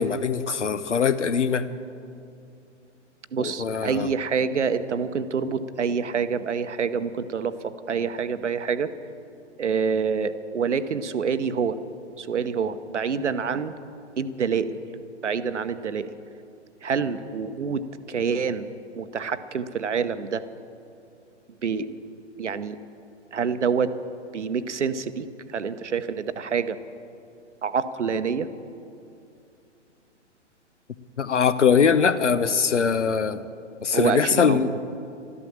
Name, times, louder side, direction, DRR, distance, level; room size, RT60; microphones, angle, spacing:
voice 1, 0.0-1.6 3.4-4.1 31.2-33.4 33.8-34.7, left 6 dB, 80° left, 14 dB, 0.8 m, -22 dB
voice 2, 3.3-8.9 9.6-11.8 12.2-13.7 14.2-14.8 15.2-16.1 16.8-20.4 21.6-21.9 22.4-22.8 23.3-23.9 24.3-26.8 27.6-28.5 33.9-34.8, right 6 dB, 75° right, 12 dB, 0.9 m, -27 dB
13.0 x 12.5 x 7.2 m, 2.6 s
figure-of-eight pair, 125°, 36 cm